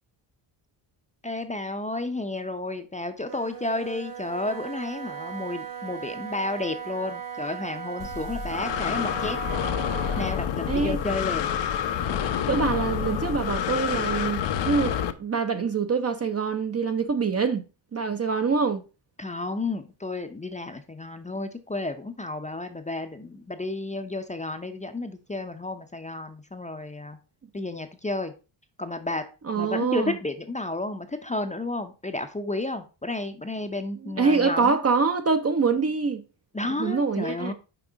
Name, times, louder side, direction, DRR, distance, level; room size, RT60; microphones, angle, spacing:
voice 1, 1.2-9.4 10.2-11.5 19.2-27.2 27.5-28.3 28.8-29.2 29.6-34.8 36.5-37.5, left 2 dB, 15° left, 0.6 m, -32 dB
Wind instrument woodwind instrument, 3.2-10.4, right 8 dB, 65° right, 2.7 m, -37 dB
Breathing, 8.0-15.1, left 8 dB, 60° left, 0.7 m, -28 dB
voice 2, 10.7-11.0 12.5-17.7 17.9-18.8 29.5-30.1 34.2-36.2 36.8-37.5, right 5 dB, 30° right, 0.6 m, -25 dB
6.1 x 4.8 x 3.9 m
cardioid pair, 110°, 49 cm